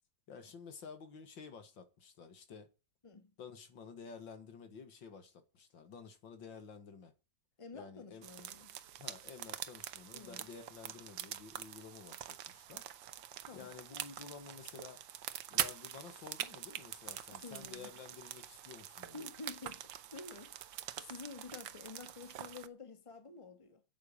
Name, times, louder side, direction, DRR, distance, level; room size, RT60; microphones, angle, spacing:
voice 1, 0.3-2.7 3.4-7.1 7.7-8.2 9.0-12.8 13.5-15.0 15.5-19.3, left 5 dB, 80° left, 2.5 m, -52 dB
voice 2, 3.0-3.3 7.6-8.8 10.1-10.4 13.4-13.7 17.3-17.9 19.1-23.8, left 4 dB, 15° left, 1.5 m, -50 dB
sound 1, 8.2-22.7, right 11 dB, 80° right, 1.6 m, -44 dB
9.0 x 8.9 x 8.8 m
omnidirectional pair, 2.0 m